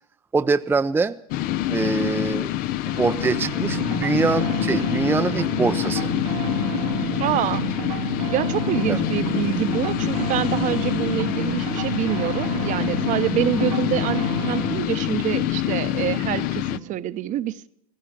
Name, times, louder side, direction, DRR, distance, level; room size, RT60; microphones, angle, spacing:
voice 1, 0.3-1.2 1.7-2.5 3.0-6.1 8.9-9.0, right 4 dB, 10° right, 0.5 m, -23 dB
sound 1, 1.3-16.8, left 14 dB, 50° left, 0.7 m, -26 dB
sound 2, 2.9-17.0, right 8 dB, 80° right, 1.3 m, -32 dB
voice 2, 7.2-8.0 8.3-17.7, right 12 dB, 45° right, 0.9 m, -26 dB
16.5 x 14.5 x 5.9 m
supercardioid pair, 110°, 19 cm